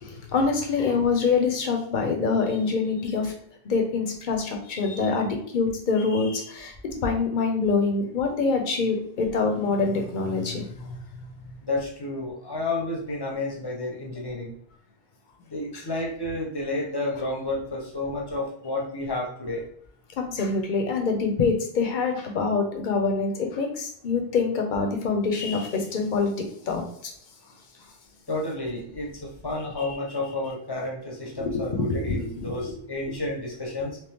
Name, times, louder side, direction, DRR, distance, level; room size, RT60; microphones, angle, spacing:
voice 1, 0.0-3.3 3.6-11.0 20.2-26.8 31.4-32.6, left 4 dB, 55° left, 3 dB, 0.8 m, -25 dB
voice 2, 11.6-14.5 15.5-19.6 28.3-34.0, left 2 dB, 25° left, -2 dB, 0.9 m, -31 dB
3.1 x 3.0 x 3.5 m, 0.64 s
omnidirectional pair, 1.0 m